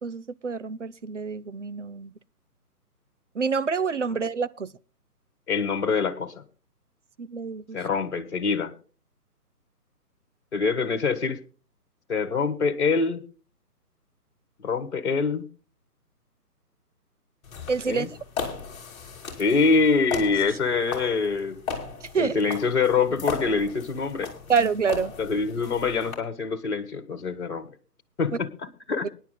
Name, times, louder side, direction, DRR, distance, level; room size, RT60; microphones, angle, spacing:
voice 1, 0.0-2.1 3.4-4.7 7.2-7.8 17.7-18.1 22.1-22.4 24.5-25.1, right 5 dB, 50° right, 0.6 m, -27 dB
voice 2, 5.5-6.4 7.7-8.7 10.5-11.4 12.1-13.2 14.6-15.4 17.9-18.1 19.4-21.6 22.1-24.3 25.2-27.7 28.2-29.1, left 4 dB, 45° left, 1.7 m, -25 dB
sound 1, 17.4-26.1, left 5 dB, 20° left, 2.8 m, -37 dB
24.5 x 10.5 x 2.2 m
figure-of-eight pair, 140°, 47 cm